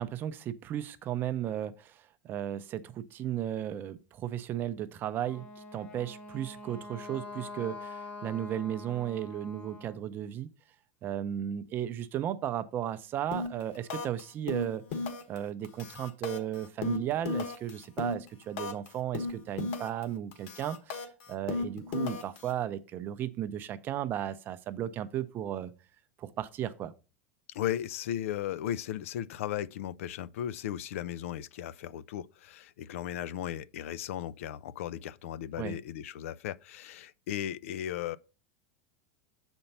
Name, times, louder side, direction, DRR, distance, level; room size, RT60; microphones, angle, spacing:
voice 1, 0.0-10.5 11.0-14.8 15.3-25.7 26.2-26.9 35.6-35.8, right 11 dB, 30° right, 0.5 m, -35 dB
Wind instrument woodwind instrument, 5.1-10.0, left 2 dB, 20° left, 0.8 m, -45 dB
sound 1, 13.3-13.6 13.9-14.2 14.5-15.4 15.6-18.9 19.1-20.0 20.3-22.5, left 4 dB, 60° left, 1.4 m, -35 dB
voice 2, 27.5-38.2, left 11 dB, 90° left, 0.4 m, -36 dB
6.9 x 4.4 x 5.3 m
supercardioid pair, 155°, 7 cm